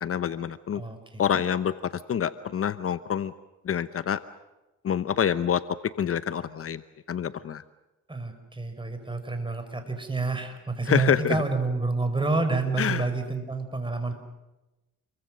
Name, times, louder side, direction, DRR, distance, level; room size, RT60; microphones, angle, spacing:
voice 1, 0.0-0.8 1.2-3.3 3.7-4.2 4.8-5.6 6.0-6.8 7.1-7.6 10.9-11.4 12.8-13.1, left 8 dB, 50° left, 13 dB, 0.9 m, -26 dB
voice 2, 0.8-1.2 8.1-14.1, right 3 dB, 15° right, 7 dB, 5.3 m, -28 dB
28.5 x 23.5 x 6.4 m, 1.0 s
cardioid pair, 90°, 30 cm